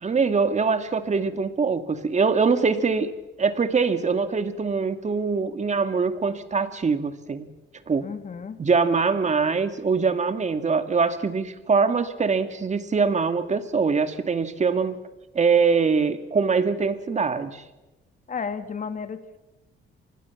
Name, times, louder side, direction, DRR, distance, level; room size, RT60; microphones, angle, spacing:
voice 1, 0.0-3.1 3.4-7.5 7.9-8.1 8.6-15.0 15.3-17.6, right 5 dB, 35° right, 9 dB, 2.3 m, -23 dB
voice 2, 8.0-8.6 18.3-19.4, left 6 dB, 40° left, 10 dB, 2.1 m, -33 dB
25.0 x 21.0 x 7.3 m, 1.0 s
cardioid pair, 90°, 20 cm